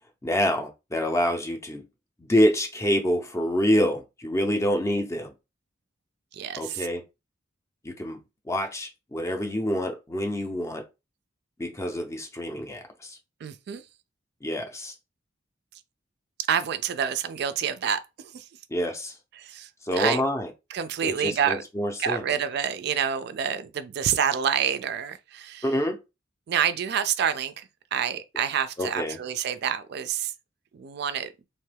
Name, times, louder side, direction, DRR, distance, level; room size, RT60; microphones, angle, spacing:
voice 1, 0.2-1.8 2.2-5.3 6.6-7.0 7.8-8.2 8.5-10.8 11.6-13.2 14.4-14.9 18.7-19.2 19.8-20.5 21.0-22.2 25.6-26.0 28.8-29.2, equal, 15° left, 0.5 m, -26 dB
voice 2, 6.3-6.9 13.4-13.8 16.5-18.5 19.3-20.2 20.7-21.6 22.0-25.6 26.5-30.3 30.7-31.3, right 8 dB, 55° right, 0.3 m, -28 dB
2.9 x 2.2 x 3.3 m
head